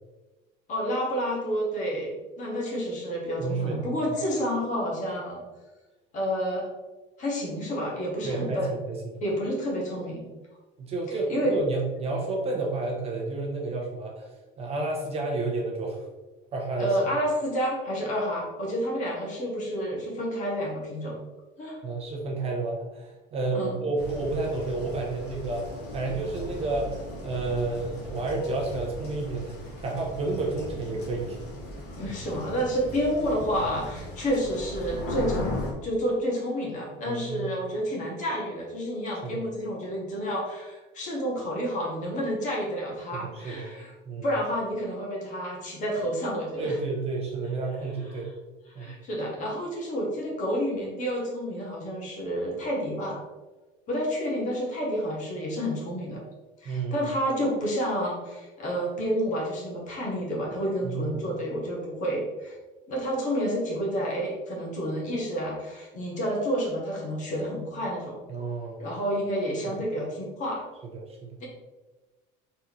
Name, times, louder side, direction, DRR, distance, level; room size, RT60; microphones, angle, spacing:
voice 1, 0.7-5.4 6.1-6.7 7.2-8.7 9.2-10.3 11.1-11.6 16.8-21.2 21.6-21.8 23.5-23.8 32.0-43.9 44.2-46.8 48.1-48.2 48.8-53.2 53.9-56.2 56.6-62.6 62.9-68.2 68.8-70.7 71.4-71.5, equal, 40° left, -3 dB, 1.4 m, -29 dB
voice 2, 3.4-3.8 8.2-9.2 10.8-14.3 14.6-16.0 16.5-17.0 21.8-25.6 25.9-29.6 29.8-31.4 37.0-37.5 39.1-39.4 43.1-43.7 44.1-44.3 46.6-48.3 48.8-48.9 56.6-57.0 60.8-61.1 68.3-68.8 69.6-69.7 71.2-71.4, right 3 dB, 30° right, -1 dB, 0.7 m, -30 dB
sound 1, 24.0-35.7, left 1 dB, 60° left, 1.2 m, -37 dB
4.2 x 3.7 x 3.0 m, 1.2 s
cardioid pair, 160°, 19 cm